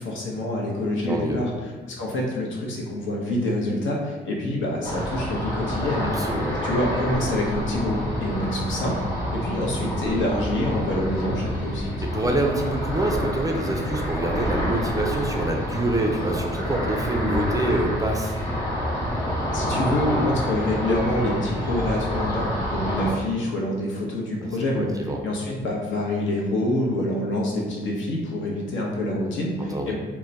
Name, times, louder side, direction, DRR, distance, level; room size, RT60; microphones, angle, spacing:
voice 1, 0.0-6.1 6.6-11.9 19.5-24.9 25.2-29.9, left 1 dB, 75° left, -2 dB, 0.8 m, -26 dB
voice 2, 1.0-1.4 6.1-6.5 12.0-18.4 23.1-23.2 24.4-25.3 29.7-29.9, right 1 dB, 20° right, 1 dB, 0.3 m, -26 dB
Ocean, 4.8-23.1, equal, 15° left, 1.0 m, -28 dB
2.3 x 2.1 x 3.9 m, 1.3 s
cardioid pair, 90°, 20 cm